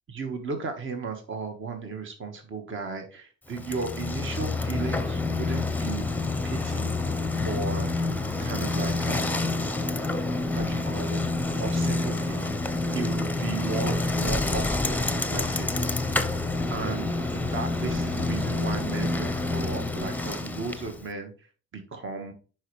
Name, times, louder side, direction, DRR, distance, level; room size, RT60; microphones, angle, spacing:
voice 1, 0.1-6.1 6.4-6.9 7.4-7.9 8.4-9.5 10.5-11.2 11.6-12.5 12.9-15.8 16.7-22.3, right 4 dB, 40° right, 5 dB, 1.5 m, -35 dB
Bicycle, 3.5-21.0, left 2 dB, 5° left, 0.8 m, -28 dB
10.5 x 4.6 x 3.2 m, 0.37 s
cardioid pair, 90°, 30 cm